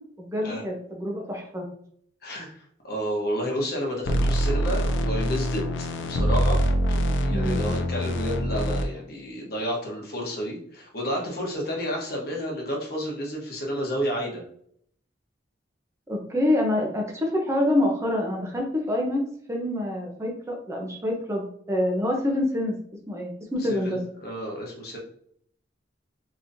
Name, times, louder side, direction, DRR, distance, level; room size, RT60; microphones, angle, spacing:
voice 1, 0.2-1.7 7.3-7.8 16.1-19.2 19.5-22.8 23.1-24.0, left 1 dB, 15° right, 0 dB, 0.6 m, -26 dB
voice 2, 2.2-6.6 6.9-14.4 23.7-25.0, equal, 55° left, -1 dB, 1.1 m, -31 dB
sound 1, 4.0-8.8, equal, 80° left, 0.5 m, -24 dB
3.9 x 2.9 x 2.6 m, 0.65 s
head